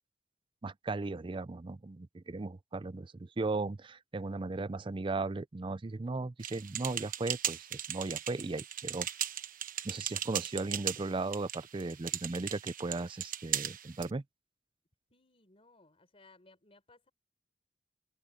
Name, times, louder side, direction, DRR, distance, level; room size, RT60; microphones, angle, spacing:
voice 1, 0.6-9.1 9.8-14.2, right 3 dB, 30° right, 0.5 m, -36 dB
sound 1, 6.4-14.1, right 10 dB, 50° right, 1.1 m, -38 dB
voice 2, 15.1-17.1, left 3 dB, 35° left, 4.4 m, -62 dB
head